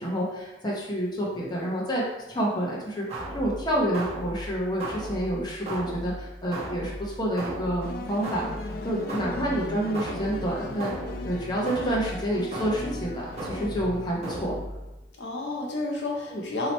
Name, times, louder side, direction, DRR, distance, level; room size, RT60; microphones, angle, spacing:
voice 1, 0.0-3.1 3.3-8.4 8.8-10.9 11.2-14.5 16.3-16.4, right 1 dB, 25° left, -4 dB, 0.8 m, -28 dB
sound 1, 3.1-15.0, right 1 dB, 35° right, 0.9 m, -36 dB
sound 2, 7.8-14.5, left 2 dB, 55° left, 0.3 m, -39 dB
voice 2, 9.0-9.4 15.2-16.7, left 2 dB, 75° left, -1 dB, 0.7 m, -31 dB
2.9 x 2.8 x 4.2 m, 0.97 s
head